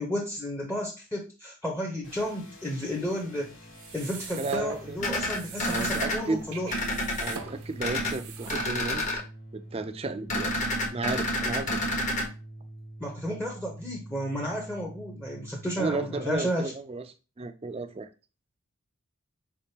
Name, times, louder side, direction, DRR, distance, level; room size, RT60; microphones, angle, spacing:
voice 1, 0.0-3.5 3.9-6.7 13.0-16.7, equal, 10° left, -1 dB, 0.7 m, -32 dB
sound 1, 2.0-16.4, right 1 dB, 70° left, 1.3 m, -46 dB
sound 2, 3.7-9.1, right 5 dB, 90° right, 0.8 m, -42 dB
voice 2, 4.4-5.0 5.7-6.4 7.2-9.2 9.5-10.5 10.9-11.8 15.8-17.0 17.4-18.1, right 3 dB, 25° right, 9 dB, 0.4 m, -33 dB
sound 3, 5.0-6.2 6.7-7.3 7.8-8.1 8.5-9.2 10.3-12.2, left 1 dB, 35° left, 1.1 m, -29 dB
5.0 x 3.5 x 2.8 m, 0.31 s
head